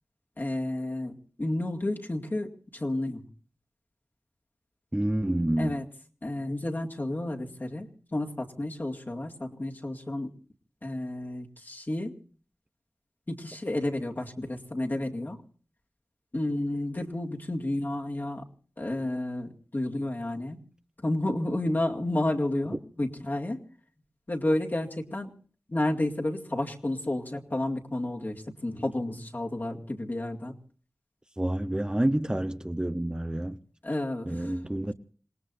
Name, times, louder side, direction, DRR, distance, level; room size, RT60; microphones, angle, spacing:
voice 1, 0.4-3.2 5.6-5.8 6.2-10.3 10.8-12.1 13.3-15.4 16.3-18.4 18.8-20.6 21.0-23.6 24.3-25.3 25.7-30.5 33.8-34.5, left 1 dB, 40° left, 2.2 m, -31 dB
voice 2, 4.9-5.8 31.4-33.6 34.3-34.9, right 1 dB, 15° right, 0.8 m, -28 dB
27.5 x 19.0 x 2.6 m
wide cardioid pair, 60°, 5 cm